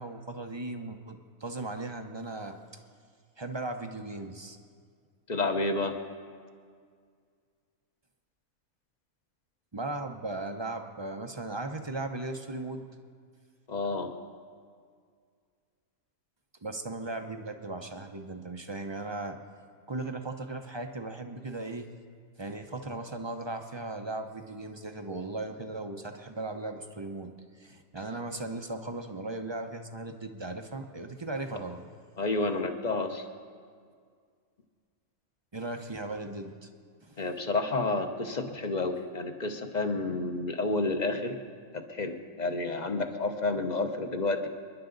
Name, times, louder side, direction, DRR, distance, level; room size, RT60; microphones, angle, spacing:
voice 1, 0.0-2.6 3.4-4.6 9.7-12.9 16.6-19.4 19.9-21.9 22.4-27.3 27.6-31.8 35.5-36.7 37.0-37.3, right 2 dB, 30° right, 5 dB, 0.5 m, -37 dB
voice 2, 5.3-6.0 13.7-14.1 32.2-33.2 37.2-41.4 41.7-44.5, left 2 dB, 35° left, 6 dB, 0.9 m, -30 dB
28.0 x 11.0 x 3.9 m, 2.1 s
omnidirectional pair, 1.5 m